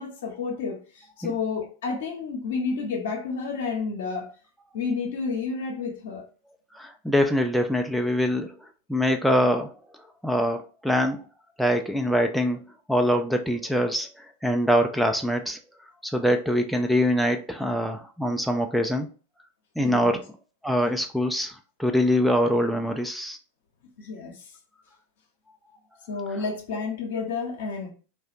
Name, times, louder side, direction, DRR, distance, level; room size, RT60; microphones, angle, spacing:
voice 1, 0.0-4.3 4.7-6.2 19.8-20.2 24.0-24.3 26.1-27.9, left 4 dB, 70° left, 0.7 m, -30 dB
voice 2, 6.7-8.5 8.9-9.7 10.2-11.2 11.6-12.6 12.9-14.1 14.4-15.6 16.0-19.1 19.8-20.2 20.6-21.5 21.8-23.4, equal, ahead, 0.3 m, -23 dB
2.3 x 2.2 x 2.7 m
hypercardioid pair, 90°, 0 cm